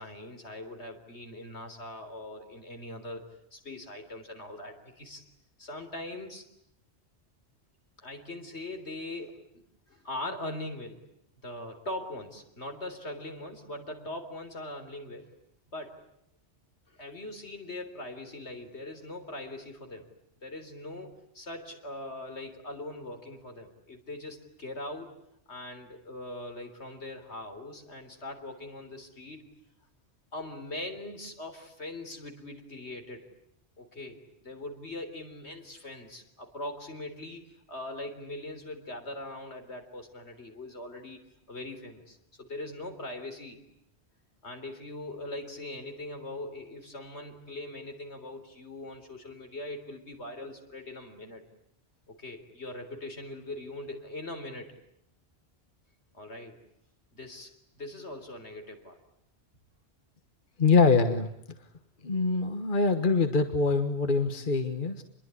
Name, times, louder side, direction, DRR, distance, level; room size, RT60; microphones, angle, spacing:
voice 1, 0.0-3.2 3.5-5.2 5.6-6.5 8.0-9.6 9.9-11.0 11.4-15.3 15.7-15.9 16.9-20.1 20.4-25.1 25.5-29.4 30.3-33.3 33.8-41.2 41.5-43.6 44.4-51.4 52.1-54.7 56.1-56.6 57.1-59.0, left 1 dB, 80° left, 5 dB, 4.0 m, -41 dB
voice 2, 60.6-61.3 62.0-65.0, left 4 dB, 50° left, 8 dB, 1.6 m, -24 dB
27.0 x 22.0 x 9.8 m, 0.77 s
omnidirectional pair, 1.1 m